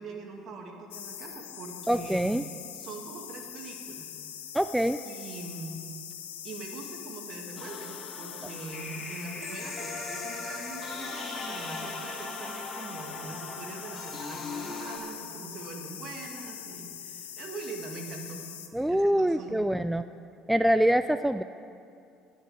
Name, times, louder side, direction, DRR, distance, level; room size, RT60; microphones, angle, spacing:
voice 1, 0.0-2.3 2.7-4.2 5.1-5.8 6.4-18.4 18.9-19.6, right 3 dB, 55° right, 2 dB, 2.0 m, -42 dB
sound 1, 0.9-18.7, left 9 dB, 85° left, 0.8 m, -43 dB
voice 2, 1.9-2.4 4.5-5.0 18.7-20.0 20.5-21.4, equal, 5° right, 11 dB, 0.3 m, -25 dB
sound 2, 7.6-15.0, left 3 dB, 30° left, 2.5 m, -39 dB
11.0 x 6.6 x 9.2 m, 2.4 s
hypercardioid pair, 65°, 0 cm